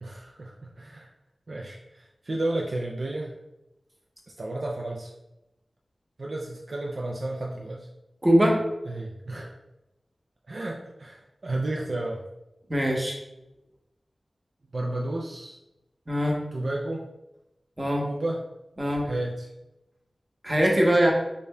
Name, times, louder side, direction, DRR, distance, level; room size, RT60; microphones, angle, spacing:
voice 1, 0.0-1.1 1.5-3.3 4.4-5.1 6.2-7.9 8.9-9.5 10.5-12.2 14.7-15.6 16.5-17.0 18.0-18.4 19.0-19.5, right 2 dB, 65° right, -1 dB, 0.4 m, -32 dB
voice 2, 8.2-8.6 12.7-13.2 16.1-16.4 17.8-18.1 18.8-19.1 20.4-21.1, equal, 30° right, -1 dB, 0.9 m, -22 dB
5.0 x 2.6 x 2.2 m, 0.93 s
wide cardioid pair, 60°, 0 cm